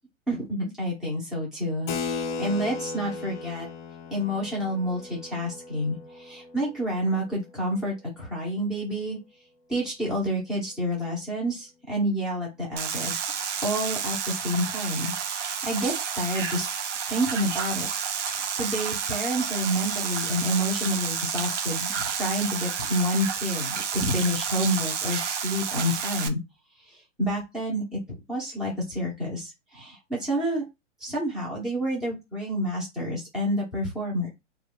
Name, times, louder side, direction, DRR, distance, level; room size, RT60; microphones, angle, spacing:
voice 1, 0.3-3.7 4.1-9.2 9.7-13.2 13.6-16.8 17.1-17.9 18.3-26.4 26.8-30.6 31.0-34.3, equal, ahead, -5 dB, 0.3 m, -29 dB
Keyboard (musical), 1.9-7.9, left 4 dB, 40° left, 0.6 m, -36 dB
sound 1, 12.8-26.3, right 7 dB, 70° right, 0.7 m, -30 dB
2.3 x 2.1 x 3.6 m, 0.23 s
hypercardioid pair, 130°, 37 cm